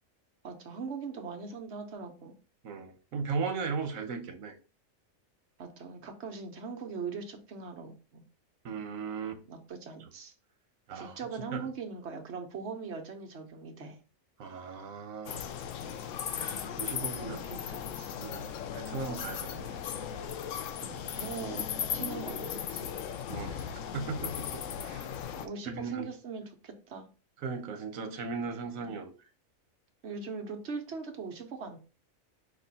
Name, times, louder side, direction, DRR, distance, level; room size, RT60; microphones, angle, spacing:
voice 1, 0.4-2.3 5.6-8.2 9.5-10.3 10.9-14.0 15.8-16.1 17.2-18.1 20.7-21.7 21.9-22.9 24.0-24.3 25.4-27.1 28.8-29.0 30.0-31.8, right 5 dB, 60° right, 1.1 m, -41 dB
voice 2, 2.6-4.5 8.6-9.4 10.9-11.2 11.5-11.7 14.4-15.4 16.4-17.4 18.2-19.8 23.3-25.1 25.6-26.1 27.4-29.1, right 5 dB, 85° right, 1.2 m, -37 dB
sound 1, 15.3-25.5, left 8 dB, 75° left, 0.9 m, -37 dB
5.3 x 2.4 x 4.0 m
omnidirectional pair, 1.4 m